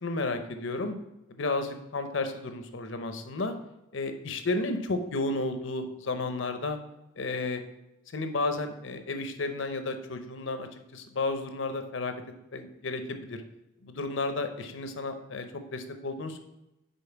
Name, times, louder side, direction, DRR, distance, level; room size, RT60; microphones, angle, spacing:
voice 1, 0.0-1.0 1.3-3.5 3.9-6.8 7.2-7.6 8.1-12.2 12.5-13.4 13.8-15.5 15.7-16.4, left 3 dB, 65° left, 7 dB, 0.7 m, -32 dB
5.3 x 4.3 x 5.7 m, 0.92 s
head